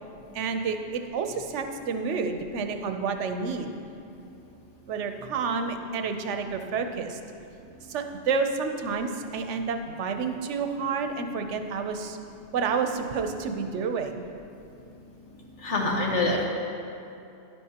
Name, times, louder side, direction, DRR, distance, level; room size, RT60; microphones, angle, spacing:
voice 1, 0.3-3.7 4.9-7.2 7.9-12.2 12.5-14.2, right 5 dB, 90° right, 6 dB, 1.0 m, -29 dB
voice 2, 15.6-16.5, left 2 dB, 85° left, 0 dB, 1.5 m, -25 dB
11.0 x 10.0 x 2.9 m, 2.6 s
omnidirectional pair, 1.2 m